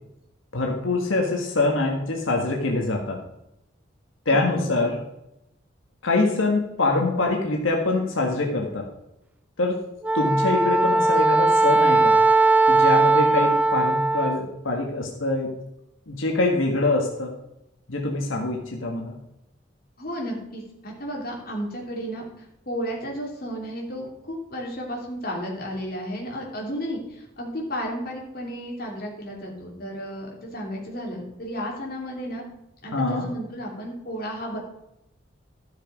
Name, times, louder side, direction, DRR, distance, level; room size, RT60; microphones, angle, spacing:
voice 1, 0.5-3.2 4.2-5.0 6.0-8.8 9.6-9.8 10.1-12.2 12.7-15.5 16.1-17.3 17.9-19.2 32.9-33.3, left 2 dB, 90° left, 0 dB, 1.7 m, -24 dB
voice 2, 4.3-4.6 20.0-22.2 22.6-32.4 32.8-34.6, equal, 50° left, -2 dB, 3.0 m, -33 dB
Wind instrument woodwind instrument, 10.0-14.5, right 3 dB, 10° right, 0.3 m, -19 dB
13.0 x 6.6 x 5.2 m, 0.86 s
head